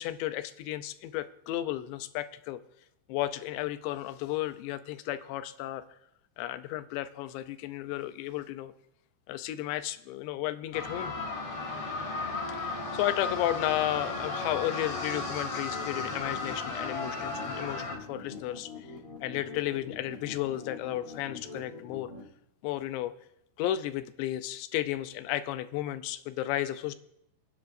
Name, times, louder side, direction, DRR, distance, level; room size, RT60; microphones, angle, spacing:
voice 1, 0.0-2.6 3.1-5.8 6.4-8.7 9.3-11.1 12.6-18.9 19.2-22.1 22.6-23.1 23.6-27.0, left 14 dB, 80° left, 11 dB, 2.8 m, -33 dB
sound 1, 10.7-18.0, left 3 dB, 40° left, 2.6 m, -35 dB
sound 2, 15.7-22.3, left 4 dB, 15° right, 4.7 m, -45 dB
28.5 x 9.9 x 2.6 m, 0.78 s
omnidirectional pair, 5.4 m